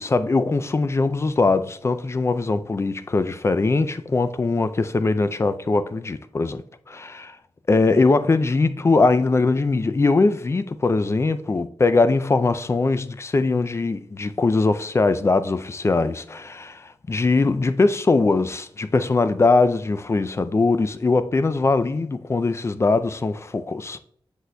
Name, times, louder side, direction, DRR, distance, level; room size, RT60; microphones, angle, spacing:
voice 1, 0.0-6.6 6.9-7.4 7.7-24.0, left 3 dB, 30° left, 0.3 m, -21 dB
8.1 x 6.2 x 2.2 m
wide cardioid pair, 135°, 10 cm